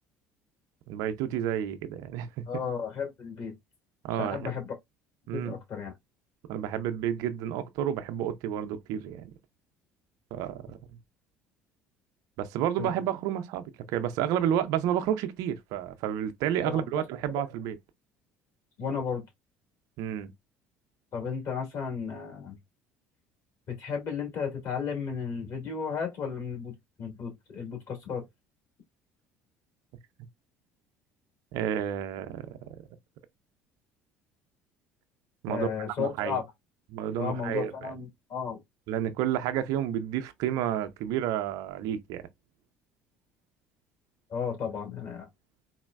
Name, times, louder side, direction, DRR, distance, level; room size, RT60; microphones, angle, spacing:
voice 1, 0.9-2.4 4.0-4.5 5.3-5.6 6.5-9.3 10.3-10.8 12.4-13.6 13.9-17.8 20.0-20.3 31.5-32.6 35.4-36.4 36.9-37.9 38.9-42.2, right 10 dB, 60° right, 0.4 m, -30 dB
voice 2, 2.5-3.5 4.1-4.7 5.3-5.9 12.8-12.9 16.6-17.0 18.8-19.2 21.1-22.6 23.7-26.7 27.0-28.2 35.5-36.4 37.2-38.6 44.3-45.3, left 6 dB, 50° left, 1.9 m, -34 dB
4.0 x 2.1 x 2.3 m
figure-of-eight pair, 60°, 7 cm